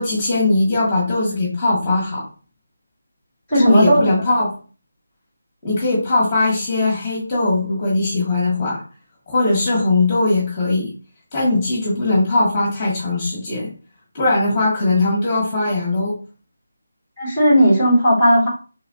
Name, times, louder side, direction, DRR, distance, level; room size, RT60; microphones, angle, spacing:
voice 1, 0.0-2.3 3.5-4.5 5.6-8.8 9.3-10.9 11.3-13.7 14.1-16.2, left 2 dB, 15° left, -5 dB, 2.0 m, -19 dB
voice 2, 3.5-4.0 17.2-18.5, equal, 5° right, -5 dB, 2.1 m, -14 dB
4.0 x 3.6 x 2.8 m, 0.37 s
figure-of-eight pair, 170°, 0 cm